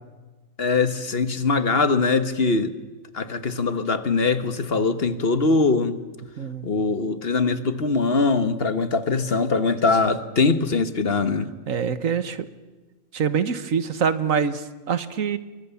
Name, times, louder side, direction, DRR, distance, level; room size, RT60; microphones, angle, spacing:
voice 1, 0.6-2.7 3.1-6.0 6.6-11.5, left 4 dB, 50° left, 1.5 m, -22 dB
voice 2, 6.4-6.7 11.7-12.5 13.1-15.4, right 6 dB, 85° right, 1.7 m, -25 dB
28.0 x 23.5 x 7.1 m
omnidirectional pair, 1.4 m